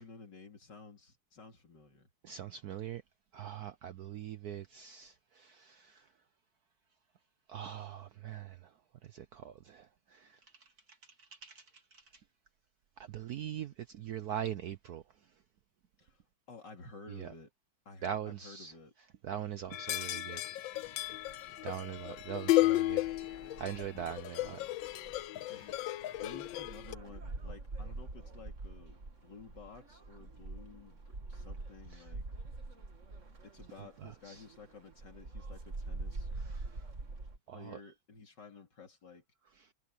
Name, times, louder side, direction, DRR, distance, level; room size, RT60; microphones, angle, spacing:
voice 1, 0.0-2.1 16.0-17.5 17.9-18.9 25.5-25.8 26.2-32.2 33.4-36.3 37.5-39.2, left 4 dB, 55° left, 3.7 m, -53 dB
voice 2, 2.2-3.0 3.3-6.1 7.5-8.7 9.0-12.0 13.0-15.0 17.1-17.3 18.0-18.7 19.2-20.4 21.6-24.6 25.6-25.7 31.9-32.0 34.0-34.4 36.5-36.8 37.5-37.8 39.6-39.7, right 9 dB, 65° right, 1.0 m, -42 dB
sound 1, 19.7-26.9, left 17 dB, 75° left, 1.4 m, -34 dB
sound 2, 20.7-37.4, right 3 dB, 35° right, 2.4 m, -46 dB
omnidirectional pair, 2.2 m